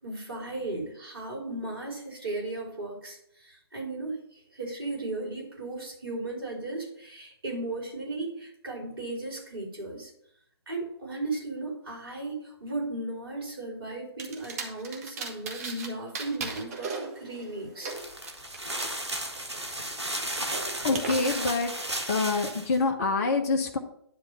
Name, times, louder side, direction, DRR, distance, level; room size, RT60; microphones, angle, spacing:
voice 1, 0.0-10.1 10.7-17.9, right 2 dB, 60° right, -1 dB, 3.6 m, -36 dB
sound 1, 14.2-15.9 16.1-18.9 19.3-21.1, right 4 dB, 35° right, 1.6 m, -38 dB
sound 2, 17.9-22.8, right 1 dB, 85° right, 1.3 m, -34 dB
voice 2, 20.8-21.7 22.1-23.8, left 3 dB, 35° left, 5 dB, 0.9 m, -26 dB
10.5 x 3.5 x 6.8 m, 0.72 s
figure-of-eight pair, 130°, 14 cm